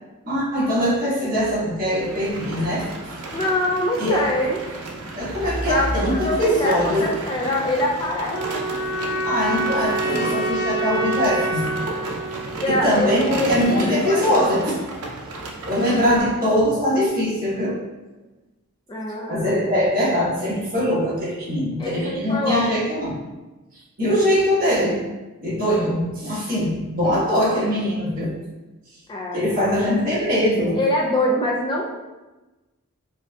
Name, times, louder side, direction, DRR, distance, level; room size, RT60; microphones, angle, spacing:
voice 1, 0.2-2.9 4.0-4.3 5.1-7.2 9.2-11.6 12.6-14.8 15.6-17.8 19.3-23.2 23.7-25.1 25.4-28.3 29.3-30.8, equal, 40° right, -9 dB, 1.3 m, -22 dB
sound 1, 2.0-16.2, right 2 dB, 80° right, 0.6 m, -34 dB
voice 2, 3.3-4.6 5.4-8.7 12.6-13.1 13.3-14.7 18.9-19.5 21.8-22.7 29.1-29.4 30.8-31.8, left 1 dB, 20° left, -2 dB, 0.3 m, -24 dB
sound 2, 8.3-13.3, right 2 dB, 35° left, 1.1 m, -27 dB
4.8 x 2.6 x 2.3 m, 1.1 s
head